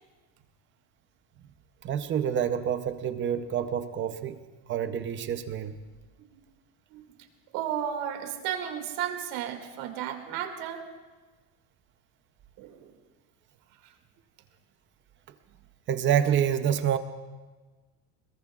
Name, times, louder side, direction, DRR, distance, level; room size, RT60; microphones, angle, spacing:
voice 1, 1.8-4.4 4.7-5.8 15.9-17.0, right 9 dB, 25° right, 10 dB, 0.6 m, -27 dB
voice 2, 7.5-10.8 12.6-13.0 13.8-13.9, right 9 dB, 85° right, 4 dB, 2.3 m, -34 dB
23.5 x 21.5 x 2.4 m, 1.3 s
cardioid pair, 170°, 44 cm